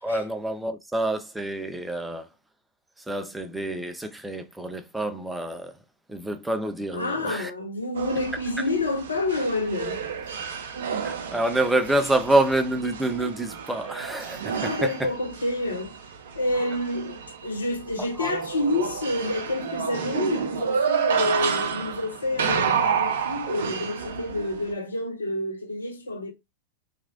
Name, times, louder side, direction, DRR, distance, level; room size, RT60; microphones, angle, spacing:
voice 1, 0.0-2.3 3.0-5.8 6.1-7.5 11.0-15.1 18.0-18.3, right 1 dB, 5° right, 0.4 m, -27 dB
voice 2, 6.9-10.0 14.6-15.9 16.4-26.3, left 2 dB, 75° left, 0.6 m, -28 dB
sound 1, 7.9-24.7, right 7 dB, 60° right, 0.4 m, -30 dB
2.9 x 2.4 x 2.7 m
figure-of-eight pair, 90°, 0 cm